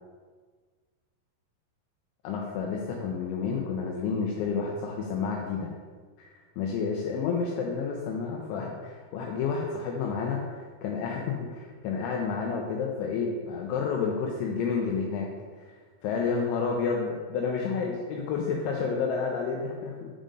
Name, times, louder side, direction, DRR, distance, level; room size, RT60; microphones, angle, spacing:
voice 1, 2.2-5.7 6.2-6.3 6.6-15.3 15.6-15.7 16.0-20.1, left 5 dB, 85° left, 0 dB, 2.7 m, -30 dB
7.7 x 5.1 x 3.7 m, 1.5 s
omnidirectional pair, 5.9 m